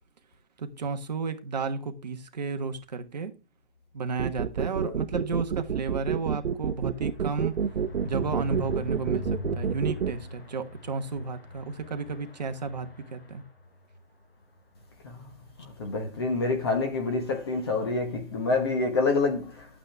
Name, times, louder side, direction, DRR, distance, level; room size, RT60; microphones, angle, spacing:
voice 1, 0.6-3.3 3.9-7.6 8.0-13.4, right 4 dB, 40° right, 1.3 m, -32 dB
sound 1, 4.2-10.1, right 7 dB, 70° right, 0.9 m, -28 dB
sound 2, 5.5-14.0 14.4-14.6 14.8-14.9 15.2-15.5, left 2 dB, 60° left, 4.4 m, -42 dB
voice 2, 15.6-19.7, left 3 dB, 20° left, 1.2 m, -27 dB
12.0 x 8.8 x 3.4 m
hypercardioid pair, 175°, 34 cm